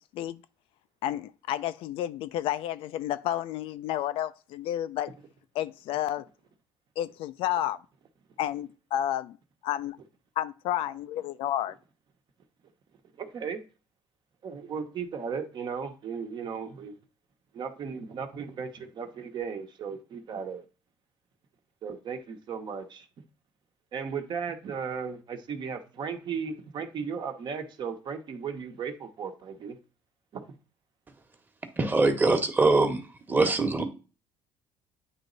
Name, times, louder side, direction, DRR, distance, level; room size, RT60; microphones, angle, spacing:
voice 1, 1.0-5.1 5.5-6.3 7.0-7.8 8.4-9.4 9.6-10.0 10.4-11.7, left 12 dB, 70° left, 0.4 m, -31 dB
voice 2, 13.2-13.6 14.4-17.0 17.5-20.6 21.8-23.1 23.9-29.8 30.3-30.5, right 6 dB, 50° right, 1.1 m, -36 dB
voice 3, 31.8-33.0 33.3-33.8, right 3 dB, 20° right, 1.2 m, -23 dB
9.0 x 3.1 x 3.9 m
cardioid pair, 100°, 10 cm